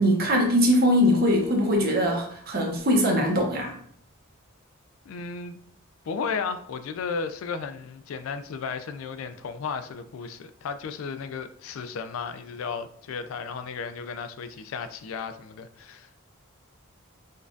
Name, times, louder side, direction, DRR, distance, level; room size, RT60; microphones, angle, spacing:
voice 1, 0.0-3.8, equal, 45° right, 0.8 m, -22 dB
voice 2, 5.1-5.6 6.1-16.1, left 5 dB, 75° left, 0.3 m, -34 dB
5.2 x 2.4 x 2.5 m
head